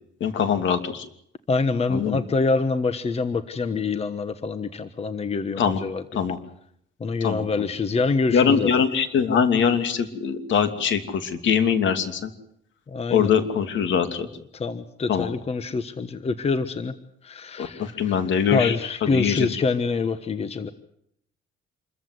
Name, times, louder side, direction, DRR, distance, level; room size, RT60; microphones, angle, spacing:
voice 1, 0.2-1.0 1.9-2.2 5.6-5.8 6.1-6.4 7.2-7.5 8.3-12.3 13.1-14.3 15.1-15.3 17.6-19.5, left 7 dB, 65° left, 9 dB, 2.8 m, -22 dB
voice 2, 1.5-6.0 7.0-8.7 12.9-13.3 14.5-16.9 17.2-18.2 18.5-20.7, left 4 dB, 30° left, 11 dB, 1.3 m, -25 dB
27.0 x 14.5 x 9.6 m, 0.73 s
cardioid pair, 120°, 21 cm